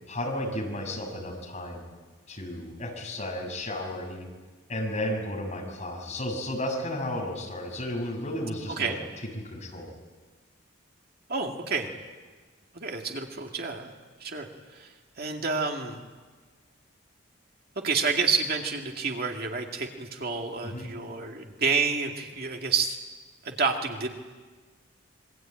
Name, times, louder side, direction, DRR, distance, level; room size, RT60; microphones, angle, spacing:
voice 1, 0.1-1.8 2.3-4.3 4.7-8.9 9.3-9.9 20.6-20.9, left 1 dB, 35° left, 0 dB, 6.6 m, -33 dB
voice 2, 11.3-11.9 12.7-13.9 14.2-16.0 17.8-23.0 23.4-24.1, right 5 dB, 50° right, 2 dB, 2.3 m, -29 dB
27.0 x 23.0 x 9.1 m, 1.4 s
head